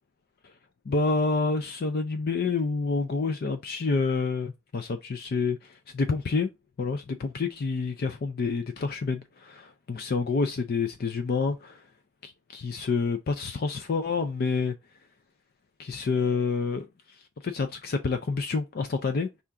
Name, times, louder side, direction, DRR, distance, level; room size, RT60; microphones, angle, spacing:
voice 1, 0.9-6.5 6.8-11.8 12.2-14.7 15.8-19.3, left 4 dB, 50° left, 0.4 m, -28 dB
5.5 x 2.4 x 3.6 m
head